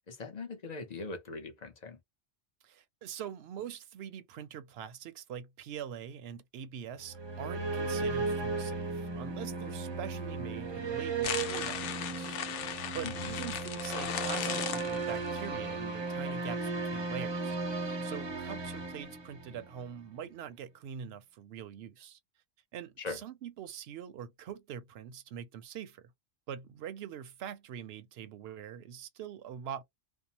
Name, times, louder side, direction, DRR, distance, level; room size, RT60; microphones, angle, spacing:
voice 1, 0.0-2.0 13.0-13.3 23.0-23.2, left 3 dB, 40° left, 0.7 m, -41 dB
voice 2, 2.6-22.2 22.7-26.1 26.5-29.8, right 9 dB, 65° right, 0.7 m, -44 dB
sound 1, 7.0-19.8, right 3 dB, 30° right, 0.5 m, -36 dB
sound 2, 11.2-15.4, left 8 dB, 85° left, 0.9 m, -37 dB
2.6 x 2.1 x 2.7 m
omnidirectional pair, 1.2 m